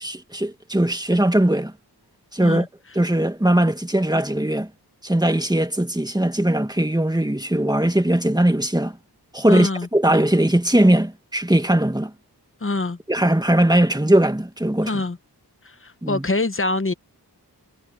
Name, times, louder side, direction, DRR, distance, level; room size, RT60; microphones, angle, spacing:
voice 1, 0.0-1.7 2.3-2.7 2.9-4.7 5.0-9.0 9.3-12.1 13.1-15.0 16.0-16.3, right 1 dB, 10° right, 1.9 m, -20 dB
voice 2, 9.5-9.9 12.6-13.0 14.9-15.2 15.6-16.9, left 2 dB, 30° left, 1.1 m, -24 dB
wide cardioid pair, 75°, 41 cm